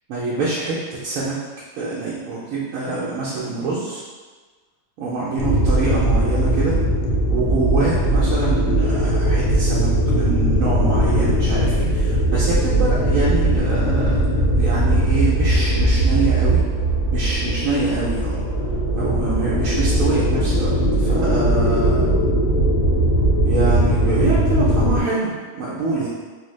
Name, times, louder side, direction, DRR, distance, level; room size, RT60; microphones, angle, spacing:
voice 1, 0.1-1.4 1.8-4.0 5.0-6.8 7.3-16.7 17.1-18.4 19.0-20.7 21.0-22.1 23.4-26.1, right 3 dB, 85° right, -7 dB, 1.0 m, -25 dB
sound 1, 5.4-25.0, right 1 dB, 85° left, 1.1 m, -19 dB
3.2 x 2.1 x 3.0 m, 1.4 s
omnidirectional pair, 1.4 m